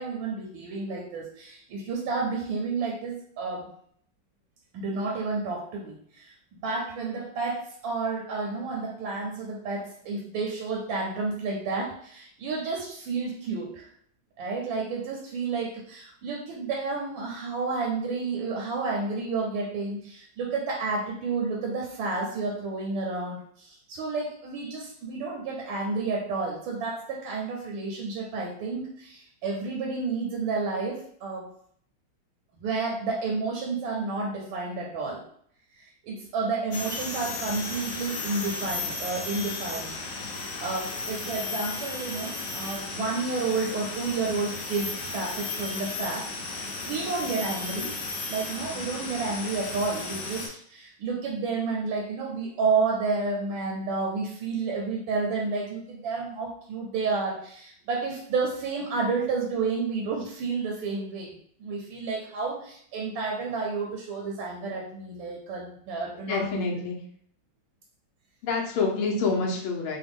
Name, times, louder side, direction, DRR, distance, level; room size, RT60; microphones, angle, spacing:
voice 1, 0.0-3.7 4.7-13.9 14.4-31.5 32.5-35.2 35.8-40.0 40.3-47.9 48.3-66.6, right 4 dB, 80° right, -1 dB, 1.4 m, -31 dB
sound 1, 36.7-50.5, left 3 dB, 65° left, 1.3 m, -34 dB
voice 2, 66.2-67.0 68.4-70.0, left 4 dB, 85° left, 0 dB, 1.6 m, -27 dB
4.0 x 2.2 x 3.5 m, 0.63 s
omnidirectional pair, 2.2 m